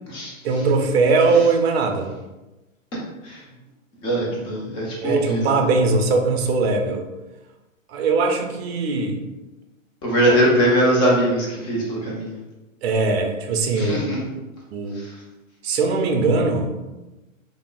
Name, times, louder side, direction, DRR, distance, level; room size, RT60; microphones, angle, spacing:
voice 1, 0.4-2.1 5.0-7.0 7.9-9.2 12.8-14.0 14.7-15.0 15.6-16.7, right 3 dB, 50° right, 4 dB, 0.6 m, -20 dB
voice 2, 4.0-5.6 10.0-12.3 13.8-14.2 14.9-15.2, right 1 dB, 15° left, -3 dB, 0.4 m, -21 dB
3.4 x 2.0 x 2.4 m, 1.0 s
hypercardioid pair, 120°, 40 cm